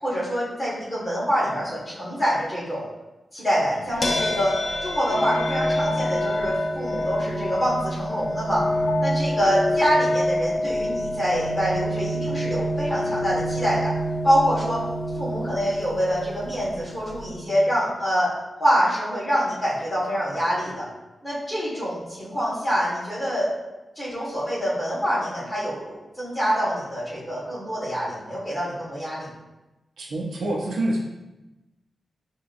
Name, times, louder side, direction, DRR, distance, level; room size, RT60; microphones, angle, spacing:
voice 1, 0.0-2.8 3.3-8.6 9.0-13.9 14.2-14.8 15.1-18.3 18.6-20.9 21.2-23.5 23.9-29.3, equal, 10° left, -8 dB, 1.5 m, -25 dB
sound 1, 4.0-17.5, equal, 35° left, 0.4 m, -27 dB
sound 2, 4.6-11.1, left 5 dB, 70° left, 0.7 m, -41 dB
voice 2, 30.0-31.0, right 1 dB, 75° right, -2 dB, 0.7 m, -26 dB
5.7 x 2.9 x 2.5 m, 1.0 s
wide cardioid pair, 180°, 0 cm